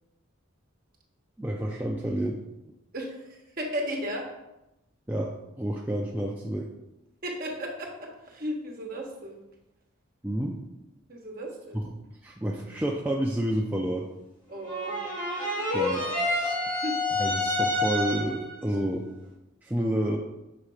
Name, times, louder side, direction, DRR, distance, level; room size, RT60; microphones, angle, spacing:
voice 1, 1.4-2.4 5.1-6.7 10.2-10.6 11.7-11.8 12.2-14.1 15.7-16.5 17.2-19.0 19.6-20.2, right 1 dB, 10° right, -2 dB, 0.3 m, -29 dB
voice 2, 2.9-4.3 7.2-9.4 11.1-11.8 14.5-15.0 16.7-17.0, equal, 40° right, 0 dB, 1.1 m, -35 dB
sound 1, 14.6-18.5, left 1 dB, 20° left, 2.0 m, -28 dB
6.0 x 3.3 x 4.9 m, 0.95 s
head